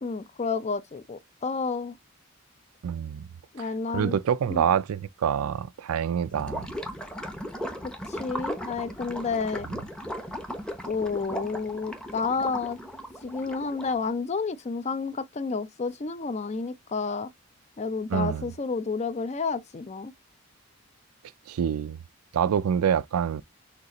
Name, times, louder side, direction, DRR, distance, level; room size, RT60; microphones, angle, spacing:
voice 1, 0.0-2.0 3.5-4.2 4.5-4.7 7.8-9.7 10.8-12.8 13.2-17.3 17.8-20.1, left 4 dB, 30° left, 0.4 m, -30 dB
voice 2, 2.8-3.3 3.6-3.7 3.9-6.7 18.1-18.5 21.5-22.0 22.3-23.4, right 8 dB, 90° right, 0.4 m, -26 dB
Gurgling / Liquid, 6.3-14.0, equal, 5° left, 0.8 m, -37 dB
6.5 x 2.4 x 2.9 m
head